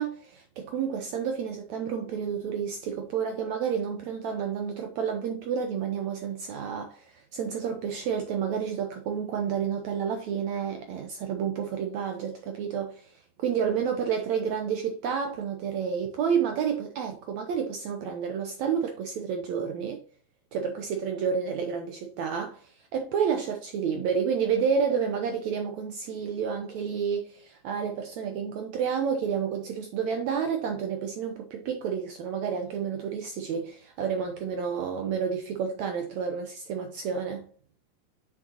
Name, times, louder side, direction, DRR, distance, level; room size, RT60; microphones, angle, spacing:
voice 1, 0.0-20.0 20.5-37.5, right 7 dB, 70° right, 1.8 m, -30 dB
7.4 x 6.5 x 2.8 m
omnidirectional pair, 3.9 m